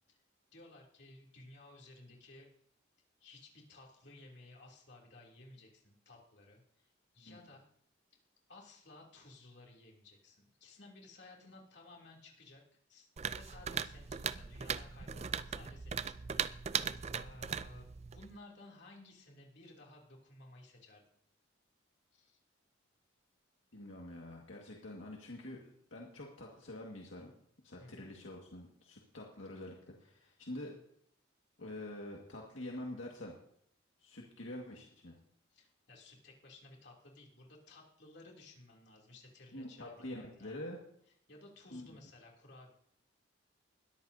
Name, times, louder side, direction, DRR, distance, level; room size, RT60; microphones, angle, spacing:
voice 1, 0.5-2.5 3.2-6.9 7.1-7.7 8.5-12.6 12.9-16.1 17.1-21.0 22.1-22.4 27.7-28.1 35.5-40.6 41.3-42.7, left 2 dB, 60° left, -1 dB, 3.0 m, -57 dB
sound 1, 13.2-18.3, right 7 dB, 35° right, 0.4 m, -39 dB
voice 2, 23.7-27.3 27.6-30.7 31.6-33.4 34.0-35.2 39.5-40.8 41.7-41.9, left 1 dB, 80° left, -1 dB, 1.9 m, -46 dB
20.5 x 13.5 x 2.8 m, 0.70 s
head